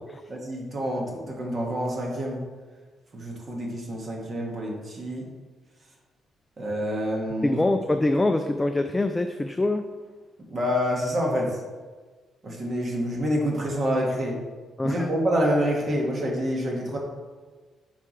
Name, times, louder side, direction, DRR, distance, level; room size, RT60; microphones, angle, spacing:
voice 1, 0.3-2.4 3.1-5.3 6.6-7.6 10.5-11.6 12.4-14.4 14.8-17.0, equal, 40° right, -1 dB, 1.6 m, -27 dB
voice 2, 7.4-9.9 14.8-15.1, left 2 dB, 15° left, 6 dB, 0.4 m, -24 dB
7.6 x 4.9 x 3.2 m, 1.4 s
cardioid pair, 90°, 0 cm